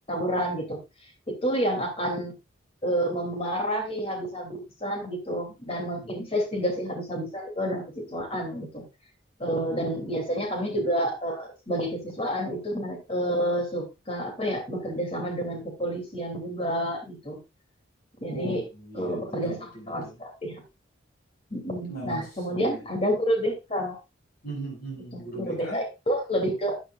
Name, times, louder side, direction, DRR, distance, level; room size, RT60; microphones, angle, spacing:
voice 1, 0.1-2.3 2.8-8.8 9.4-17.4 18.2-18.6 18.9-20.6 21.5-24.0 25.1-26.8, equal, 30° left, 3 dB, 3.0 m, -29 dB
voice 2, 9.6-9.9 18.3-20.2 21.9-22.8 24.4-25.8, right 2 dB, 50° left, -2 dB, 7.3 m, -39 dB
12.5 x 9.2 x 2.5 m, 0.25 s
head